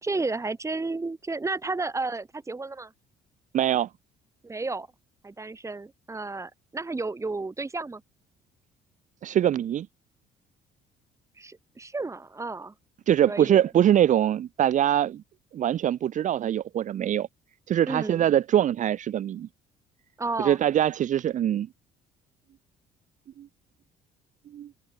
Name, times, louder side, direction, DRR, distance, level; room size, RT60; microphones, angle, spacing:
voice 1, 0.0-2.9 4.4-4.9 5.2-8.0 11.4-12.7 13.3-13.6 17.9-18.2 20.2-20.6, right 3 dB, 15° right, 3.6 m, -32 dB
voice 2, 3.5-3.9 9.2-9.9 13.1-15.2 15.5-17.3 17.7-19.5 20.4-21.7 23.4-23.5 24.5-24.7, right 11 dB, 50° right, 0.7 m, -23 dB
cardioid pair, 110°, 17 cm